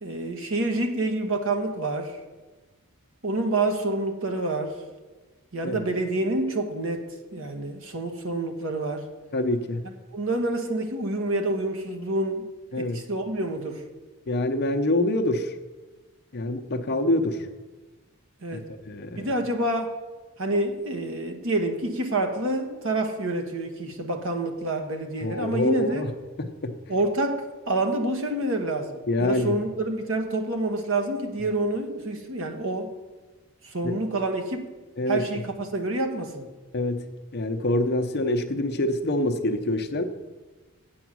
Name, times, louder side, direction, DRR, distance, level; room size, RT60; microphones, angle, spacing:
voice 1, 0.0-2.2 3.2-4.8 5.5-7.0 7.3-9.1 9.8-12.5 12.8-13.8 18.4-18.7 19.2-19.9 20.4-26.0 26.9-32.9 33.6-34.7 35.1-36.5, right 2 dB, 60° right, 4 dB, 1.2 m, -28 dB
voice 2, 9.3-9.8 12.7-13.0 14.3-15.5 16.3-17.5 18.5-18.6 18.9-19.3 25.2-26.1 26.4-26.7 29.1-29.6 33.8-33.9 35.0-35.2 36.7-37.0 37.3-40.0, left 1 dB, 45° left, 6 dB, 0.7 m, -25 dB
8.0 x 8.0 x 6.1 m, 1.2 s
head